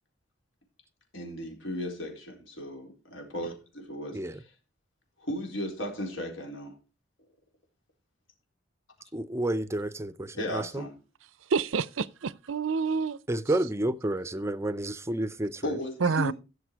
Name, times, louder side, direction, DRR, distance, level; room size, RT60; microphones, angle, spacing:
voice 1, 1.1-4.5 5.2-6.8 10.3-11.0 15.6-16.3, left 1 dB, 80° left, 4.1 m, -35 dB
voice 2, 9.1-10.8 13.3-15.7, right 1 dB, 15° right, 0.5 m, -30 dB
voice 3, 11.5-13.2 16.0-16.3, right 5 dB, 85° right, 0.6 m, -27 dB
15.5 x 6.8 x 4.6 m
head